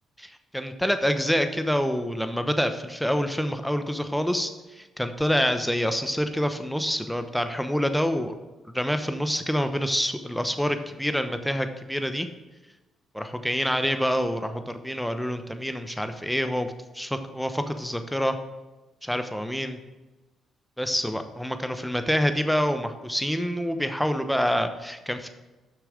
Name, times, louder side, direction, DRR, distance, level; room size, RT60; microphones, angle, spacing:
voice 1, 0.2-4.5 4.8-8.3 8.6-12.3 13.1-18.4 19.0-19.8 20.8-25.3, equal, ahead, 8 dB, 0.9 m, -27 dB
6.8 x 6.0 x 5.0 m, 1.1 s
hypercardioid pair, 45°, 0 cm